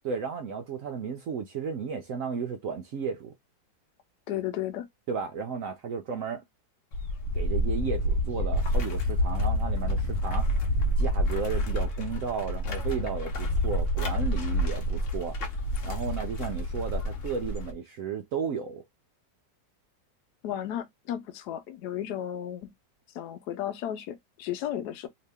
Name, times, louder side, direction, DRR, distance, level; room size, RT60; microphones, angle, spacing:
voice 1, 0.0-3.3 5.1-6.4 7.3-10.5 11.0-15.4 15.8-18.8, right 6 dB, 70° right, 0.7 m, -34 dB
voice 2, 4.3-4.9 20.4-22.7 23.1-25.1, left 11 dB, 70° left, 1.1 m, -34 dB
sound 1, 6.9-17.7, equal, 55° left, 0.9 m, -28 dB
2.9 x 2.9 x 3.3 m
omnidirectional pair, 1.9 m